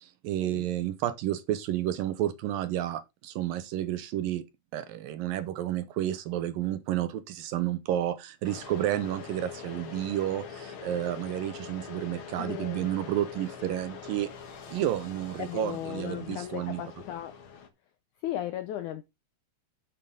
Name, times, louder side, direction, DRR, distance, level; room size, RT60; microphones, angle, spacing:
voice 1, 0.0-4.4 4.7-14.3 14.7-16.8, right 12 dB, 75° right, 2.4 m, -31 dB
sound 1, 8.4-17.7, left 6 dB, 55° left, 1.5 m, -44 dB
voice 2, 12.4-12.9 15.4-17.4 18.2-19.0, left 12 dB, 80° left, 1.7 m, -36 dB
9.6 x 7.3 x 3.8 m
omnidirectional pair, 4.4 m